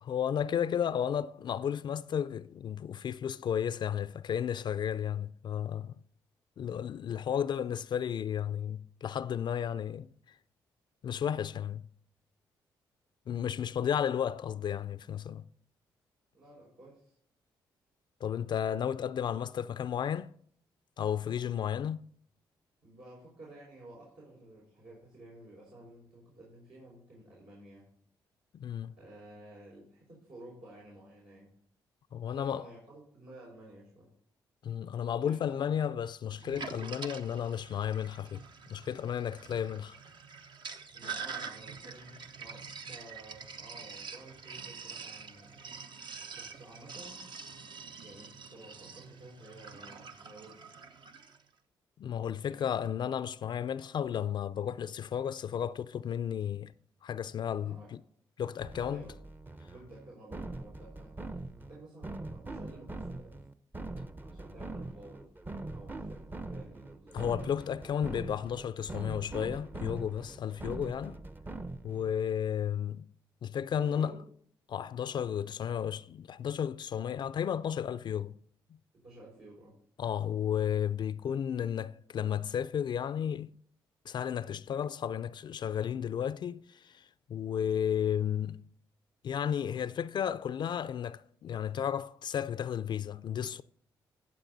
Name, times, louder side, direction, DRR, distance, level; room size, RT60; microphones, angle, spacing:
voice 1, 0.0-5.9 6.6-10.1 11.0-11.9 13.3-15.4 18.2-20.3 21.0-22.1 28.5-28.9 32.1-32.7 34.6-38.4 38.7-39.9 52.0-56.7 57.0-58.0 58.4-59.1 67.1-71.2 71.8-73.1 73.4-74.2 74.7-78.4 80.0-83.5 84.1-88.6 89.2-93.6, left 9 dB, 55° left, 0.4 m, -33 dB
voice 2, 16.3-17.2 22.8-27.8 29.0-31.5 32.2-34.1 35.2-35.9 40.9-45.7 46.3-47.2 48.0-50.6 52.5-52.9 57.5-57.9 58.8-59.2 59.7-63.4 64.2-65.2 65.7-67.2 73.7-74.2 79.0-79.7, right 1 dB, 75° right, 5.2 m, -52 dB
Sink (filling or washing), 36.4-51.4, right 5 dB, 60° right, 0.9 m, -45 dB
sound 1, 58.6-72.1, right 2 dB, 20° right, 0.7 m, -42 dB
14.5 x 7.2 x 4.0 m
supercardioid pair, 60°, 9 cm